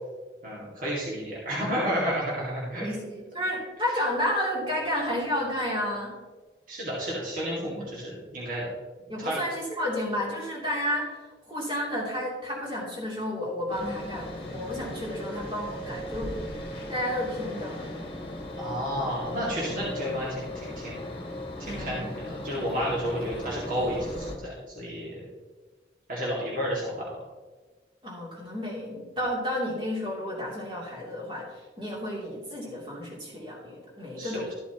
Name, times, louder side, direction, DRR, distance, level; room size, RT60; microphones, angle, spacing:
voice 1, 0.4-2.9 6.7-8.7 9.2-9.4 18.6-21.0 21.6-25.3 26.1-27.2 34.2-34.5, equal, 50° right, -6 dB, 2.3 m, -31 dB
voice 2, 2.8-6.1 7.6-7.9 9.1-16.4 16.9-17.9 19.7-19.8 21.6-22.1 28.0-31.4 31.8-34.5, left 1 dB, 25° right, -5 dB, 3.2 m, -31 dB
sound 1, 13.7-24.4, left 1 dB, 30° left, 1.6 m, -38 dB
13.5 x 8.4 x 3.0 m, 1.3 s
head